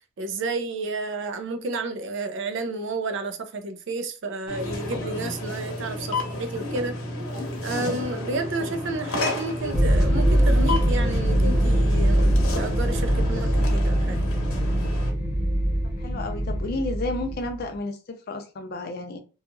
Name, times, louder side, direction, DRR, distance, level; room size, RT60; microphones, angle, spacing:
voice 1, 0.2-7.0 7.6-14.2, right 3 dB, 55° right, 0.4 m, -31 dB
sound 1, 4.5-15.1, left 2 dB, 65° left, 0.8 m, -31 dB
sound 2, 9.7-17.6, equal, 10° right, 1.1 m, -22 dB
voice 2, 16.0-19.2, left 2 dB, 45° left, 0.4 m, -32 dB
2.7 x 2.3 x 2.5 m
head